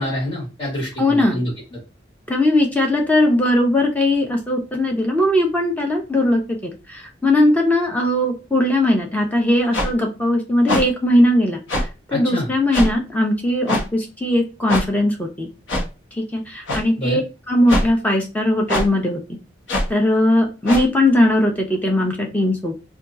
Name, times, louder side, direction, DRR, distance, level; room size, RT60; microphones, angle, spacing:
voice 1, 0.0-1.8 12.1-12.5 17.0-17.2, left 1 dB, 30° left, -7 dB, 1.3 m, -26 dB
voice 2, 1.0-1.4 2.3-11.9 12.1-15.5 16.2-17.2 17.5-19.2 19.9-22.7, left 1 dB, 10° left, 0 dB, 0.6 m, -19 dB
sound 1, 9.7-9.9 10.7-10.8 11.7-11.9 12.7-12.9 13.7-13.8 14.7-14.8 15.7-15.9 16.7-16.8 17.7-17.9 18.7-18.9 19.7-19.9 20.6-20.8, left 1 dB, 80° left, 0.9 m, -21 dB
2.8 x 2.3 x 3.6 m, 0.30 s
head